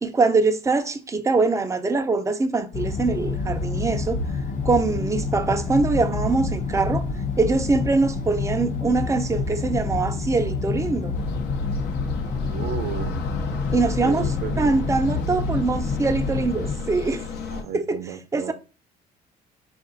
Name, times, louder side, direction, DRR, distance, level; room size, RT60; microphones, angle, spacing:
voice 1, 0.0-4.2 4.6-7.0 7.4-11.1 13.7-14.3 14.6-17.2 17.7-18.0 18.3-18.5, right 3 dB, 20° right, 0.5 m, -23 dB
sound 1, 2.7-16.7, left 3 dB, 45° left, 0.7 m, -28 dB
sound 2, 11.1-17.6, left 4 dB, 75° left, 0.8 m, -33 dB
voice 2, 12.3-13.1 14.0-14.9 17.5-18.5, right 8 dB, 75° right, 0.7 m, -34 dB
4.7 x 2.5 x 3.9 m
cardioid pair, 110°, 17 cm